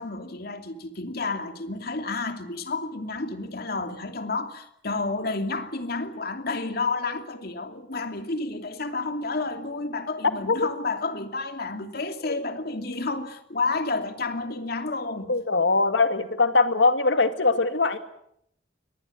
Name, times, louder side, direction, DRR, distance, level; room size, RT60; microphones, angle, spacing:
voice 1, 0.0-15.3, left 3 dB, 60° left, 2.7 m, -30 dB
voice 2, 15.3-18.0, left 3 dB, 85° left, 2.2 m, -21 dB
23.5 x 20.0 x 8.6 m
head